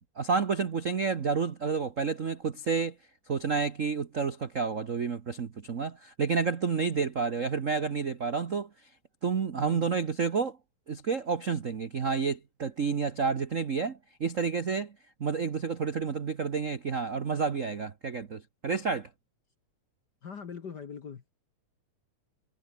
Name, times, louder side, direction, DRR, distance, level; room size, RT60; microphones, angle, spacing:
voice 1, 0.2-2.9 3.3-8.7 9.2-10.6 10.9-14.9 15.2-19.1, right 5 dB, 80° right, 0.7 m, -30 dB
voice 2, 9.6-9.9 20.2-21.3, left 6 dB, 45° left, 1.6 m, -42 dB
omnidirectional pair, 3.3 m